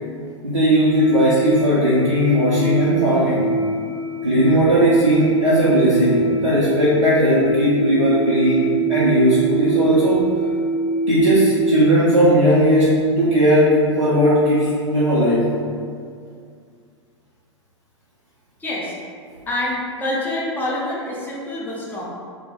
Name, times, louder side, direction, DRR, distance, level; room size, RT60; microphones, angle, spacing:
voice 1, 0.4-3.5 4.2-10.2 11.1-15.5, equal, 85° right, -10 dB, 0.5 m, -17 dB
sound 1, 0.9-11.8, right 3 dB, 85° left, 1.0 m, -24 dB
voice 2, 18.6-19.0 19.5-22.0, left 1 dB, 10° left, -5 dB, 0.5 m, -26 dB
2.2 x 2.1 x 2.8 m, 2.2 s
figure-of-eight pair, 95°, 15 cm